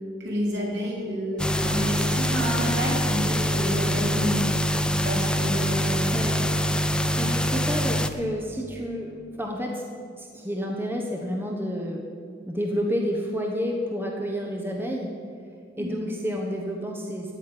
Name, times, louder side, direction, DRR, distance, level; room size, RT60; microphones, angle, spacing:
voice 1, 0.2-6.2 15.8-15.9, equal, 60° right, -4 dB, 4.2 m, -29 dB
sound 1, 1.4-8.1, equal, 5° left, 0.5 m, -24 dB
voice 2, 6.1-6.4 6.8-9.8 10.2-12.1 12.5-15.1 15.8-17.3, equal, 10° right, 0 dB, 1.1 m, -30 dB
15.5 x 6.4 x 10.0 m, 2.2 s
head